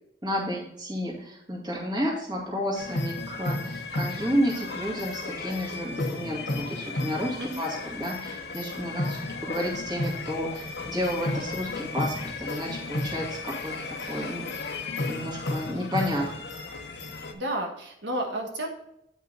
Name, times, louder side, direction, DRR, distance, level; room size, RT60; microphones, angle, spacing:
voice 1, 0.2-14.7 15.1-16.3, equal, 25° right, -3 dB, 2.1 m, -31 dB
sound 1, 2.8-17.3, left 2 dB, 75° left, 0.9 m, -33 dB
voice 2, 17.3-18.7, right 1 dB, 85° right, 1 dB, 1.3 m, -31 dB
9.2 x 5.5 x 3.9 m, 0.79 s
head